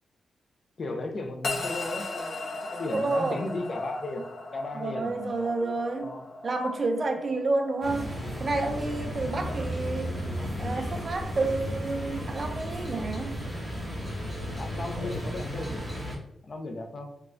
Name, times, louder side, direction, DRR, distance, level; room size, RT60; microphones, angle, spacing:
voice 1, 0.8-5.7 6.0-6.2 9.3-9.7 14.5-15.8 16.5-17.1, left 2 dB, 40° left, 0.4 m, -36 dB
sound 1, 1.4-11.8, left 3 dB, 65° left, 0.8 m, -39 dB
voice 2, 2.9-3.4 4.8-6.2 6.4-10.2 10.6-13.4, right 3 dB, 35° right, 0.4 m, -30 dB
sound 2, 7.8-16.2, equal, 15° right, 1.1 m, -34 dB
3.8 x 2.3 x 3.2 m
wide cardioid pair, 155°, 0 cm